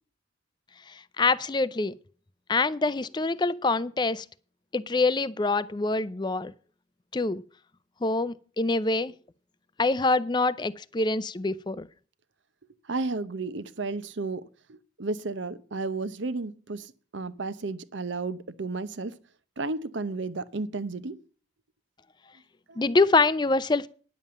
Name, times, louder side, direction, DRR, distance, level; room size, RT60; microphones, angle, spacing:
voice 1, 1.2-1.9 2.5-4.2 4.7-6.5 7.1-7.4 8.0-9.1 9.8-11.9 22.8-23.9, left 3 dB, 25° left, 0.4 m, -25 dB
voice 2, 12.9-19.2 19.6-21.2 22.7-22.9, right 3 dB, 75° right, 0.8 m, -33 dB
10.5 x 7.3 x 7.6 m
head